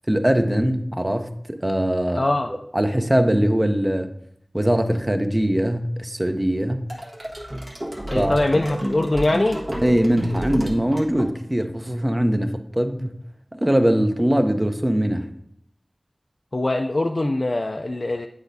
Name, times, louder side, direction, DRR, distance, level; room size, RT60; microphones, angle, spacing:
voice 1, 0.1-2.2 2.5-4.1 4.5-6.8 8.1-8.4 9.8-13.2 13.6-15.3, equal, 20° right, 7 dB, 0.7 m, -21 dB
voice 2, 2.2-2.5 8.1-9.6 16.5-18.3, left 2 dB, 55° left, 3 dB, 0.4 m, -22 dB
sound 1, 6.9-11.7, equal, 45° right, 1.4 m, -30 dB
8.1 x 5.1 x 2.7 m, 0.73 s
wide cardioid pair, 45°, 0 cm